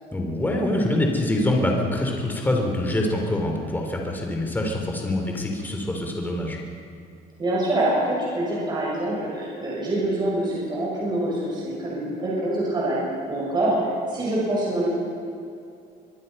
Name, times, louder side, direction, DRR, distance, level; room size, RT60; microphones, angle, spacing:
voice 1, 0.1-6.6, left 1 dB, 10° left, 1 dB, 3.3 m, -25 dB
voice 2, 7.4-13.0 13.3-14.9, right 1 dB, 25° right, -5 dB, 6.4 m, -25 dB
24.5 x 23.0 x 5.5 m, 2.5 s
cardioid pair, 155°, 18 cm